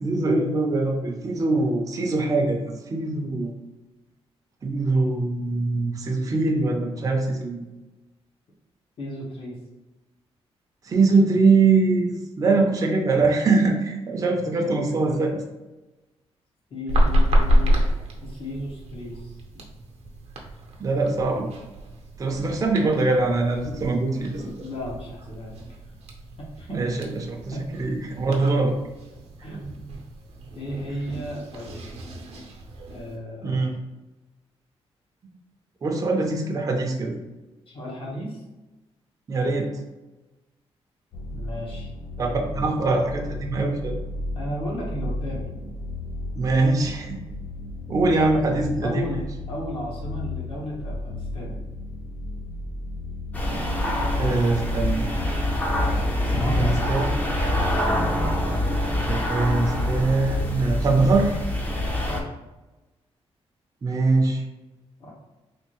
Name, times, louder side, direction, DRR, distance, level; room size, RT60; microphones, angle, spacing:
voice 1, 0.0-3.5 4.6-7.7 10.8-15.4 20.8-21.5 22.2-24.4 26.7-28.8 33.4-33.8 35.8-37.2 39.3-39.7 42.2-44.0 46.4-47.2 47.9-49.1 54.2-55.1 56.3-57.1 59.0-61.4 63.8-64.4, right 3 dB, 35° right, 1 dB, 0.5 m, -23 dB
voice 2, 1.5-2.1 9.0-9.6 14.4-15.2 16.7-17.9 18.2-19.6 24.3-25.8 26.4-27.0 27.5-27.7 29.4-30.0 30.5-31.8 32.9-33.6 37.7-38.4 41.3-41.9 42.2-42.7 44.3-45.5 48.5-51.6 56.0-57.0 61.8-62.3 65.0-65.1, equal, 60° left, -4 dB, 1.1 m, -35 dB
sound 1, 16.9-33.2, equal, 75° right, 0.7 m, -28 dB
sound 2, 41.1-58.9, left 2 dB, 80° left, 0.5 m, -35 dB
sound 3, 53.3-62.2, left 1 dB, 15° left, 0.6 m, -25 dB
3.4 x 2.5 x 3.0 m, 1.1 s
cardioid pair, 125°, 11 cm